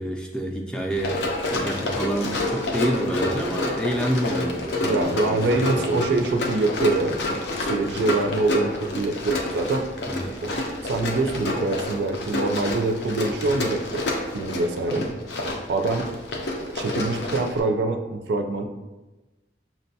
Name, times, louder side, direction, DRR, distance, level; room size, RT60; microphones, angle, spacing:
voice 1, 0.0-6.2 10.1-10.4 15.0-15.2, equal, 5° left, 1 dB, 0.3 m, -28 dB
Run, 0.9-17.6, left 2 dB, 75° left, 0.5 m, -29 dB
voice 2, 4.8-9.8 10.4-14.0 14.3-15.1 15.7-16.1 16.7-18.6, right 2 dB, 70° right, 5 dB, 0.3 m, -25 dB
5.8 x 2.2 x 2.7 m, 1.1 s
head